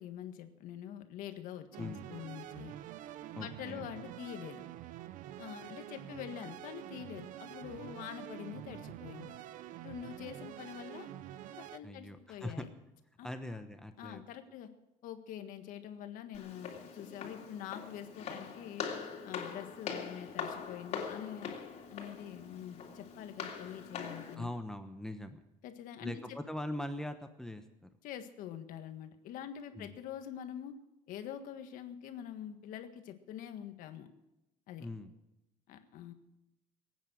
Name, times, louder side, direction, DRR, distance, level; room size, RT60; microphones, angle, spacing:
voice 1, 0.0-2.7 3.3-4.7 5.4-9.4 9.8-11.1 11.5-12.7 13.2-13.3 14.0-14.7 15.0-18.9 19.2-21.5 21.9-24.5 25.6-26.4 28.0-30.8 31.1-34.1 34.7-34.9 35.7-36.1, left 10 dB, 70° left, 8 dB, 1.6 m, -45 dB
sound 1, 1.7-11.8, right 12 dB, 65° right, 0.7 m, -47 dB
voice 2, 3.3-3.9 11.8-12.7 13.2-14.2 24.4-25.4 26.0-27.9 29.7-29.9 34.8-35.1, left 1 dB, 5° left, 7 dB, 1.0 m, -41 dB
Walk footsteps, 16.3-24.4, left 6 dB, 50° left, 3.1 m, -42 dB
22.5 x 9.2 x 6.4 m, 0.94 s
cardioid pair, 130°, 14 cm